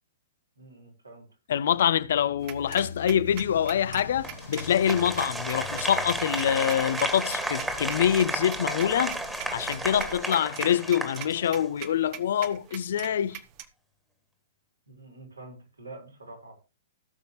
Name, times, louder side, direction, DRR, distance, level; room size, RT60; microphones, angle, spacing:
voice 1, 0.6-1.2 14.9-16.6, right 2 dB, 80° right, 4.5 m, -46 dB
voice 2, 1.5-9.2 9.5-13.4, left 9 dB, 55° left, 0.7 m, -25 dB
sound 1, 2.4-13.6, right 12 dB, 35° right, 1.2 m, -41 dB
sound 2, 3.3-10.2, left 3 dB, 75° left, 2.0 m, -46 dB
Applause, 4.2-11.8, right 1 dB, 5° right, 1.9 m, -33 dB
17.5 x 6.9 x 3.1 m
figure-of-eight pair, 110°, 0 cm